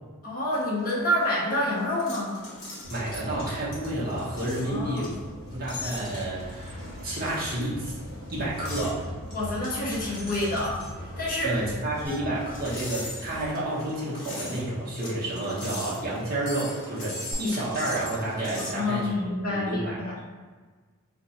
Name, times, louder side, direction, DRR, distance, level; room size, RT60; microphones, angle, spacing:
voice 1, 0.2-2.4 4.6-5.1 9.3-10.8 11.2-11.6 18.6-20.2, left 1 dB, 40° left, -6 dB, 0.8 m, -28 dB
sound 1, 0.5-18.8, left 2 dB, 60° left, 1.0 m, -41 dB
sound 2, 2.8-13.5, left 1 dB, 85° right, 0.9 m, -40 dB
voice 2, 2.9-5.1 5.5-6.4 7.0-8.0 8.3-9.0 11.4-19.1 19.5-20.2, right 1 dB, 40° right, -7 dB, 1.0 m, -30 dB
sound 3, 12.0-12.6 12.9-13.0 13.4-13.5 13.8-13.9 17.3-17.4, equal, 10° right, 1.0 m, -43 dB
2.6 x 2.2 x 4.0 m, 1.4 s
head